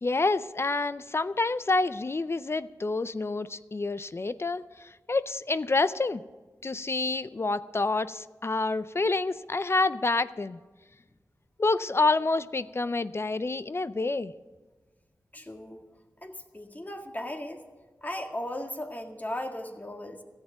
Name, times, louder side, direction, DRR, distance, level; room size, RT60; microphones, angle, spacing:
voice 1, 0.0-6.2 6.6-10.6 11.6-14.3, left 3 dB, 40° left, 14 dB, 0.5 m, -28 dB
voice 2, 15.3-15.8 16.2-17.6 18.0-20.2, left 1 dB, 25° left, 3 dB, 1.8 m, -37 dB
14.0 x 7.3 x 8.9 m, 1.3 s
cardioid pair, 45°, 7 cm